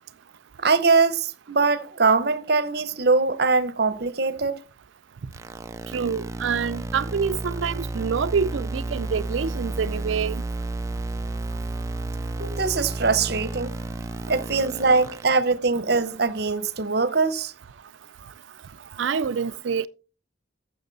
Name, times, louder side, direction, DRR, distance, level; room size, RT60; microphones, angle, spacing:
voice 1, 0.6-4.6 12.4-13.7 14.3-17.5, right 4 dB, 55° right, 0.8 m, -22 dB
sound 1, 5.3-15.3, right 2 dB, 15° right, 0.4 m, -32 dB
voice 2, 5.9-10.4 19.0-19.9, right 6 dB, 75° right, 0.4 m, -26 dB
13.5 x 6.2 x 4.0 m
head